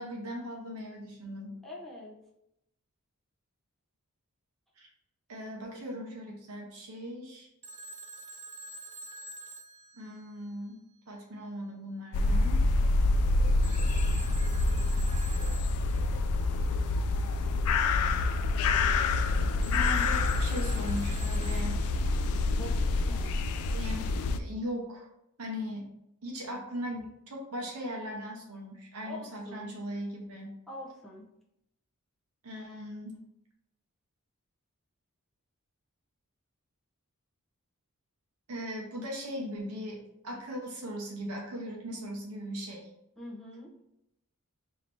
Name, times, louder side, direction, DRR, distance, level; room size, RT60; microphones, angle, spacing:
voice 1, 0.0-1.6 4.8-4.9 5.3-7.5 9.9-10.8 11.1-12.6 19.1-21.8 23.7-24.1 24.4-25.1 25.4-25.9 26.2-30.6 32.4-33.2 38.5-42.9, equal, 70° right, -1 dB, 0.8 m, -39 dB
voice 2, 1.6-2.1 22.5-22.7 23.0-23.4 29.0-29.8 30.7-31.2 43.2-43.7, left 1 dB, ahead, -5 dB, 0.8 m, -44 dB
Telephone, 7.6-10.7 13.6-16.2 19.6-22.3, right 2 dB, 30° right, 0.3 m, -46 dB
sound 1, 12.1-24.4, left 3 dB, 75° left, 0.3 m, -27 dB
3.1 x 2.8 x 4.5 m, 0.81 s
head